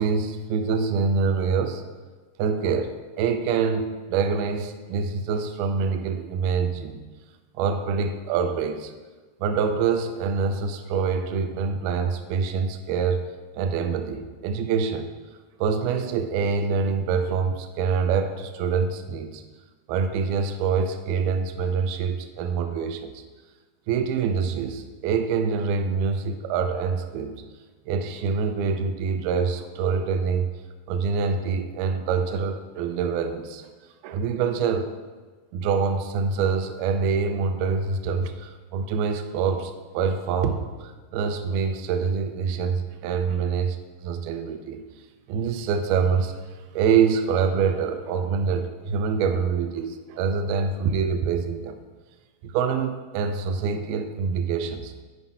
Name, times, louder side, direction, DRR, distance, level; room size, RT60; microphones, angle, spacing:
voice 1, 0.0-1.8 2.4-7.1 7.5-8.9 9.4-15.2 15.6-19.4 19.9-23.2 23.9-27.4 27.9-30.5 30.9-33.7 34.0-34.9 35.5-44.8 45.3-46.3 46.7-51.8 52.4-54.9, right 5 dB, 85° right, 7 dB, 2.4 m, -25 dB
9.9 x 5.4 x 5.6 m, 1.3 s
omnidirectional pair, 4.8 m